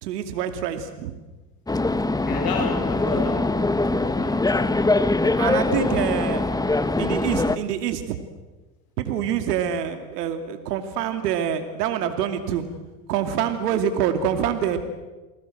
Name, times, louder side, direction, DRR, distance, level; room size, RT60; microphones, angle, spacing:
voice 1, 0.0-1.1 5.3-6.5 7.0-8.2 9.0-12.6 13.1-14.8, right 9 dB, 80° right, 7 dB, 2.6 m, -26 dB
sound 1, 1.7-7.6, left 2 dB, 10° left, 1.3 m, -22 dB
voice 2, 2.2-4.9 5.5-6.1, left 5 dB, 45° left, 3 dB, 4.5 m, -32 dB
29.0 x 20.0 x 7.9 m, 1.2 s
hypercardioid pair, 95°, 47 cm